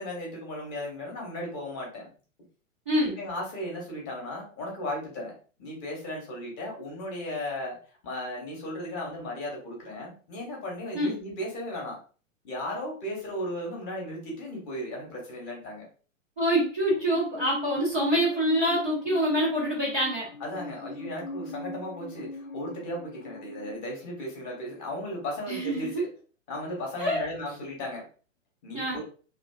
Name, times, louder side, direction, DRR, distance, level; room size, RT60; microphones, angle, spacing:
voice 1, 0.0-2.1 3.2-5.3 5.6-7.8 8.0-12.0 12.4-15.9 20.4-26.1 26.5-28.0 28.6-29.0, left 1 dB, 25° left, -1 dB, 0.8 m, -36 dB
voice 2, 2.9-3.2 10.9-11.1 16.4-20.3 25.5-26.0 27.0-27.2 28.7-29.0, equal, 15° right, -10 dB, 0.3 m, -26 dB
Musical instrument, 16.9-23.8, left 2 dB, 90° left, 0.5 m, -40 dB
2.6 x 2.4 x 2.2 m, 0.39 s
figure-of-eight pair, 110°, 39 cm